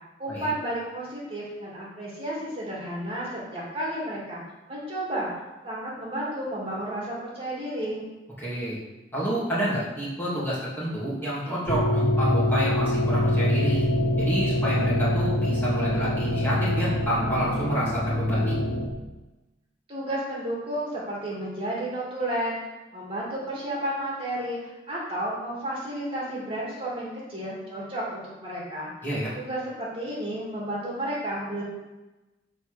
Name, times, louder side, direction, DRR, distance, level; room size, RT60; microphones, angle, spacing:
voice 1, 0.2-5.3 5.6-8.0 19.9-22.6 22.9-24.6 24.9-28.9 29.4-31.6, right 1 dB, 30° right, -6 dB, 2.7 m, -32 dB
voice 2, 8.4-8.8 9.1-13.9 14.2-18.6 29.0-29.3, equal, 10° left, -9 dB, 2.7 m, -29 dB
sound 1, 11.7-18.9, left 1 dB, 55° left, 1.7 m, -24 dB
7.8 x 4.2 x 6.8 m, 1.1 s
head